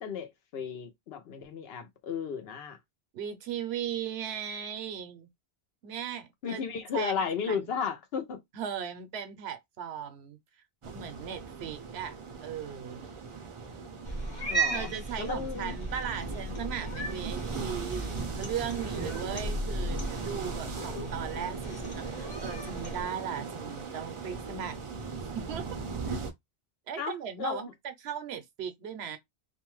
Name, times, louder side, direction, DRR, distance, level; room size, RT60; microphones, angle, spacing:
voice 1, 0.0-2.8 6.4-8.4 14.5-14.9 15.2-15.7 27.0-27.7, left 6 dB, 70° left, 0.9 m, -34 dB
voice 2, 3.1-5.3 5.8-6.6 6.9-7.7 8.5-10.4 10.9-13.1 14.7-24.8 25.2-25.8 26.1-26.2 26.9-29.2, right 8 dB, 80° right, 0.9 m, -38 dB
sound 1, 10.8-26.3, right 5 dB, 40° right, 0.5 m, -39 dB
Cat, 14.0-23.0, right 2 dB, 45° left, 1.1 m, -36 dB
2.5 x 2.2 x 3.0 m
omnidirectional pair, 1.1 m